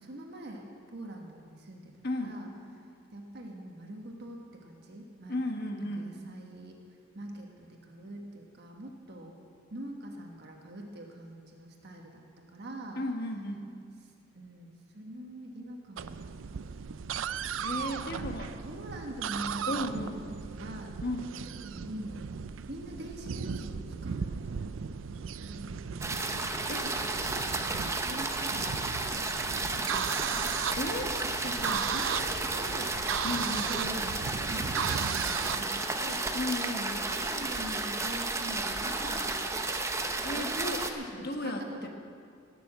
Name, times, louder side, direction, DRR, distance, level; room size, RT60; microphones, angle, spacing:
voice 1, 0.0-2.5 3.1-5.4 5.9-6.8 7.1-9.3 9.7-13.0 14.3-17.1 17.9-18.3 18.6-19.7 20.1-20.9 21.6-22.2 22.7-26.1 26.8-29.2 29.8-30.4 31.0-33.2 33.7-36.3 37.1-39.3 40.3-41.9, right 1 dB, 60° right, 1 dB, 1.4 m, -44 dB
voice 2, 2.0-2.4 5.3-6.1 13.0-13.7 17.6-18.5 19.7-20.2 21.0-21.3 26.7-26.9 30.7-31.1 33.2-33.7 36.3-37.1 40.2-40.8 41.2-41.9, left 1 dB, 55° left, 4 dB, 1.4 m, -34 dB
sound 1, 16.0-35.7, right 7 dB, 80° right, 0.4 m, -36 dB
sound 2, 26.0-40.9, right 3 dB, 15° right, 0.8 m, -32 dB
17.5 x 6.9 x 7.4 m, 2.3 s
head